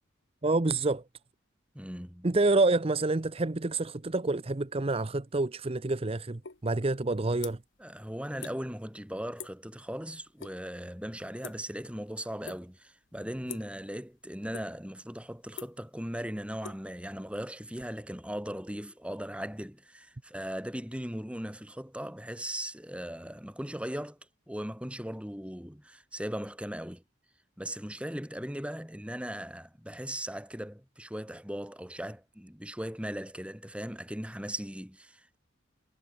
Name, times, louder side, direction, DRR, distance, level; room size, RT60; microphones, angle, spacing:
voice 1, 0.4-1.0 2.2-7.6, right 2 dB, 30° right, 0.7 m, -28 dB
voice 2, 1.7-2.3 7.8-24.2 24.5-27.0 27.6-35.4, equal, 5° right, 4.9 m, -38 dB
sound 1, 6.4-6.6 7.0-7.8 8.1-8.6 8.9-9.1 9.4-9.7 10.0-10.6 10.8-12.0 12.4-12.9 13.4-13.8 14.2-14.9 15.2-17.5, left 6 dB, 65° left, 1.8 m, -44 dB
head